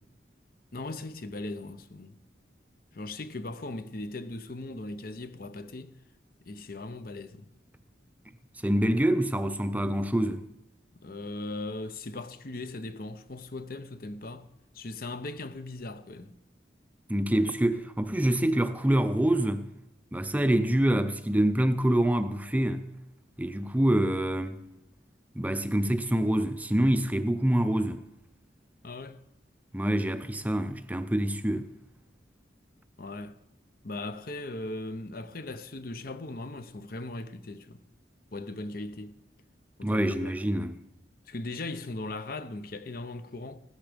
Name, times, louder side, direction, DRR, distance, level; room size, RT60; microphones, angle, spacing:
voice 1, 0.7-2.2 2.9-5.9 6.5-7.5 11.0-14.5 14.7-16.3 28.8-29.2 33.0-33.4 33.8-37.8 38.3-39.1 39.8-40.3 41.3-43.6, left 2 dB, 55° left, 0.8 m, -38 dB
voice 2, 8.6-10.5 17.1-19.7 20.1-22.9 23.4-24.6 25.4-28.0 29.7-31.7 39.8-40.8, right 1 dB, 10° right, 0.5 m, -26 dB
16.0 x 13.0 x 5.2 m
head